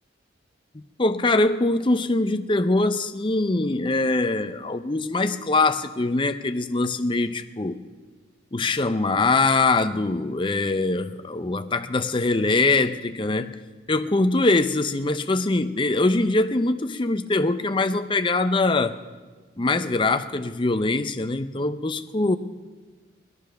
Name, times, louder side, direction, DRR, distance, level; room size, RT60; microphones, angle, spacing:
voice 1, 0.7-7.8 8.5-13.5 13.9-19.0 19.6-22.4, left 2 dB, 25° left, 10 dB, 0.6 m, -23 dB
17.5 x 12.5 x 6.4 m, 1.3 s
head